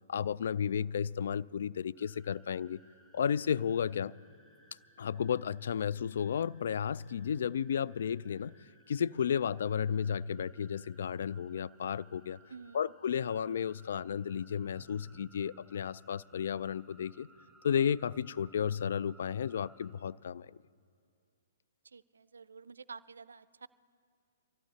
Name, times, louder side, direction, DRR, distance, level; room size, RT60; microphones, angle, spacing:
voice 1, 0.1-2.8 3.1-4.1 5.0-8.5 8.9-12.4 12.7-17.3 17.6-20.5, left 8 dB, 60° left, 20 dB, 0.3 m, -33 dB
sound 1, 2.0-19.9, right 2 dB, 5° left, 4.7 m, -64 dB
voice 2, 12.5-12.9 21.9-23.7, right 5 dB, 75° right, 20 dB, 0.4 m, -50 dB
sound 2, 14.8-15.6 16.3-16.4 16.9-19.0, right 3 dB, 15° right, 1.6 m, -64 dB
24.0 x 14.5 x 4.1 m, 2.3 s
figure-of-eight pair, 120°, 0 cm